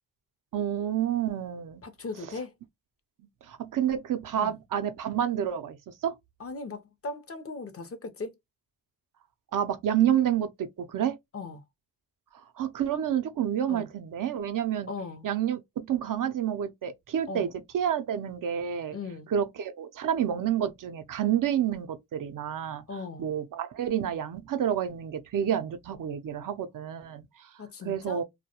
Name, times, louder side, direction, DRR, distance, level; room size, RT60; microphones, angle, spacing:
voice 1, 0.5-1.8 3.5-6.2 9.5-11.2 12.6-14.9 15.2-19.0 19.3-22.8 23.2-27.5 27.8-28.2, right 9 dB, 60° right, 0.5 m, -29 dB
voice 2, 1.8-2.5 4.4-4.6 6.4-8.3 11.3-11.6 13.7-13.9 14.9-15.3 17.3-17.5 18.9-19.3 22.9-23.3 27.6-28.2, left 3 dB, 40° left, 0.6 m, -38 dB
2.2 x 2.1 x 2.8 m
cardioid pair, 65°, 36 cm